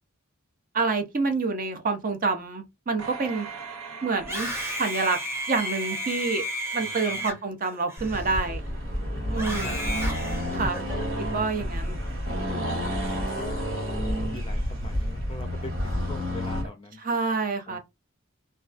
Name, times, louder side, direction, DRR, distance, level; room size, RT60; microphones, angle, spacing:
voice 1, 0.7-3.5 4.0-4.5 4.8-5.2 5.5-6.4 6.7-8.6 9.3-9.8 10.5-10.8 11.2-12.0 17.0-17.8, right 4 dB, 40° right, 0.5 m, -27 dB
sound 1, 3.0-6.4 6.9-7.0, right 5 dB, 90° right, 0.7 m, -42 dB
Screaming, 4.2-8.7 9.3-11.1, equal, 10° right, 0.8 m, -33 dB
voice 2, 6.8-7.3 9.1-10.0 10.2-10.3 11.6-11.8 12.6-17.0 17.7-17.8, left 2 dB, 25° left, 0.4 m, -43 dB
Accelerating revving vroom, 8.0-16.7, equal, 65° right, 1.2 m, -30 dB
2.3 x 2.2 x 2.4 m
head